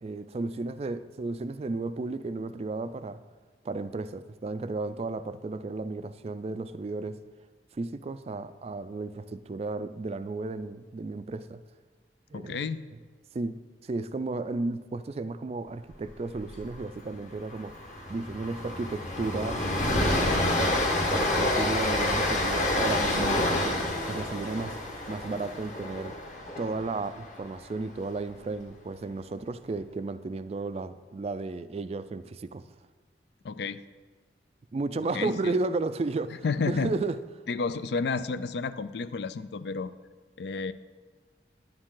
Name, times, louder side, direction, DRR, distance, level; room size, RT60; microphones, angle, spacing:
voice 1, 0.0-3.2 3.6-7.2 7.7-11.6 12.3-12.7 13.3-17.8 18.1-19.6 20.0-20.7 21.1-24.8 25.1-26.1 26.6-32.6 34.7-37.2, right 3 dB, 35° right, 13 dB, 0.3 m, -33 dB
voice 2, 12.3-12.9 33.4-33.8 35.1-35.6 36.4-37.0 37.5-39.9 40.4-40.7, left 4 dB, 65° left, 14 dB, 0.4 m, -31 dB
Train, 16.4-16.7 16.9-17.1 17.5-27.6, left 1 dB, 45° left, 1.5 m, -28 dB
10.0 x 8.9 x 3.8 m, 1.4 s
head